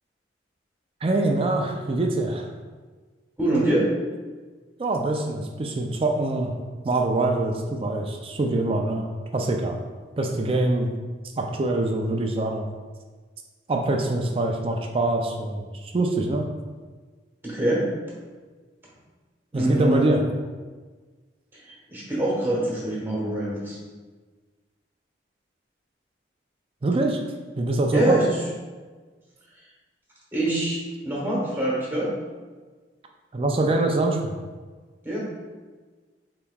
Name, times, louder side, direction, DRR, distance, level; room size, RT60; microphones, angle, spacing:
voice 1, 1.0-2.5 4.8-6.5 6.8-9.1 9.3-9.8 10.2-10.9 11.4-12.7 13.7-16.5 19.5-20.2 26.8-27.2 27.6-28.2 33.3-34.4, right 2 dB, 30° right, 3 dB, 0.3 m, -24 dB
voice 2, 3.4-3.9 17.4-17.8 19.5-20.2 21.9-23.8 27.9-28.3 30.3-32.1 35.0-35.2, right 1 dB, 10° right, -6 dB, 1.2 m, -24 dB
6.7 x 2.9 x 2.3 m, 1.4 s
head